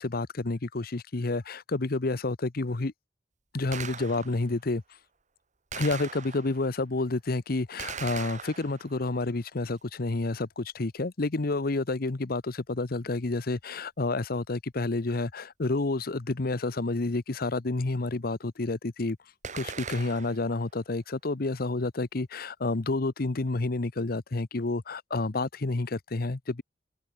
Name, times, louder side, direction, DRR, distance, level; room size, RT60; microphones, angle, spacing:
voice 1, 0.0-2.9 3.5-4.8 5.7-19.2 19.5-26.6, left 2 dB, 55° left, 0.9 m, -29 dB
Gunshot gunfire, 3.7-4.5 5.7-6.7 7.8-9.1 19.4-20.5, right 6 dB, 45° right, 3.1 m, -39 dB
head